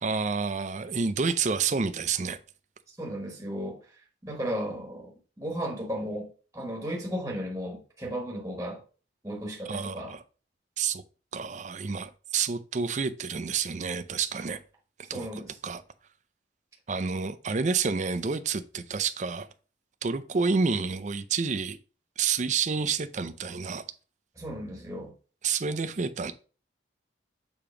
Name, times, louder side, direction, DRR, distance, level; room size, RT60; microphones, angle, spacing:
voice 1, 0.0-2.4 9.7-10.2 10.8-11.0 11.3-14.6 15.1-15.3 15.6-15.8 16.9-19.5 20.0-21.8 22.2-23.8 25.4-26.3, right 5 dB, 40° right, 0.4 m, -29 dB
voice 2, 2.9-8.8 9.2-10.1 15.1-15.5 24.4-25.1, equal, 15° right, 1.0 m, -35 dB
6.8 x 2.9 x 4.9 m
head